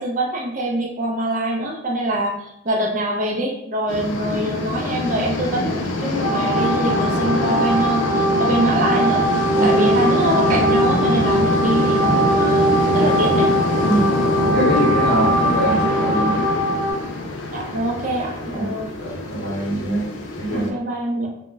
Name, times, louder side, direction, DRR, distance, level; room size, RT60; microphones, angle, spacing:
voice 1, 0.0-9.3 9.6-13.5 13.8-14.1 17.5-18.9 20.5-21.3, right 1 dB, 40° right, -1 dB, 0.5 m, -24 dB
sound 1, 3.9-20.7, left 2 dB, 70° left, 0.4 m, -24 dB
sound 2, 6.2-16.9, right 1 dB, 90° right, 0.9 m, -21 dB
voice 2, 9.5-9.8 13.8-14.0 14.4-16.5 18.5-18.7 19.0-20.1 20.4-20.7, equal, 50° left, -8 dB, 0.7 m, -23 dB
2.1 x 2.1 x 3.4 m, 0.77 s
head